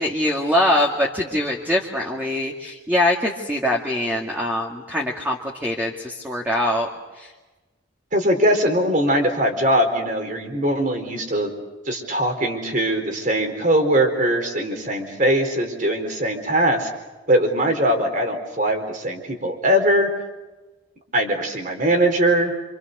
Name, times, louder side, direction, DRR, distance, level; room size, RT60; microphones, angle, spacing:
voice 1, 0.0-6.9 7.1-7.3, left 1 dB, 10° right, -1 dB, 2.2 m, -23 dB
voice 2, 8.1-11.5 11.9-16.9 17.3-20.1 21.1-22.5, right 1 dB, 45° right, 4 dB, 4.2 m, -21 dB
28.0 x 27.0 x 6.8 m, 1.2 s
head